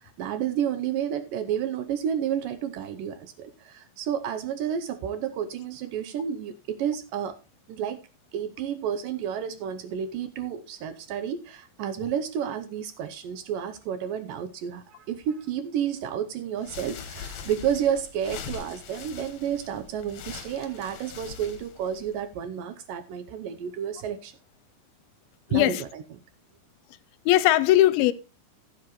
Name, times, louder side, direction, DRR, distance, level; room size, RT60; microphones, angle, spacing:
voice 1, 0.0-7.4 7.7-8.0 8.3-24.3 25.5-26.0, right 9 dB, 75° right, 2.2 m, -31 dB
sound 1, 16.6-22.3, left 7 dB, 60° left, 2.2 m, -42 dB
voice 2, 25.5-25.8 27.3-28.1, left 14 dB, 80° left, 2.4 m, -19 dB
15.5 x 7.6 x 3.1 m
omnidirectional pair, 4.5 m